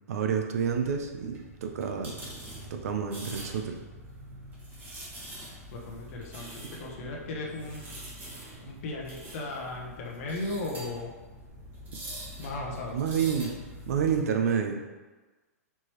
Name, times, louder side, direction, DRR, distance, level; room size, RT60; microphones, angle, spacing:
voice 1, 0.1-2.2 2.7-3.8 12.9-13.5 13.9-14.8, right 7 dB, 65° right, 4 dB, 0.6 m, -29 dB
sound 1, 0.5-14.2, right 1 dB, 20° right, 1.1 m, -44 dB
voice 2, 5.7-7.9 8.6-11.1 12.4-13.0, left 2 dB, 55° left, -1 dB, 0.9 m, -36 dB
4.5 x 3.0 x 3.0 m, 1.3 s
hypercardioid pair, 125°, 9 cm